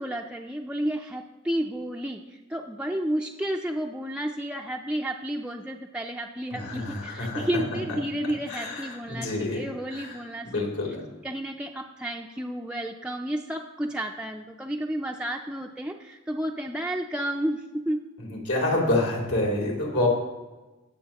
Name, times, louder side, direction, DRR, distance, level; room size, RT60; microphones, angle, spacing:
voice 1, 0.0-10.7 11.2-18.0, right 1 dB, 5° right, 0 dB, 0.4 m, -31 dB
voice 2, 6.5-7.5 8.5-9.6 9.9-10.2 10.4-11.0 18.2-20.1, left 2 dB, 85° left, -2 dB, 3.4 m, -28 dB
20.5 x 7.0 x 2.9 m, 1.2 s
head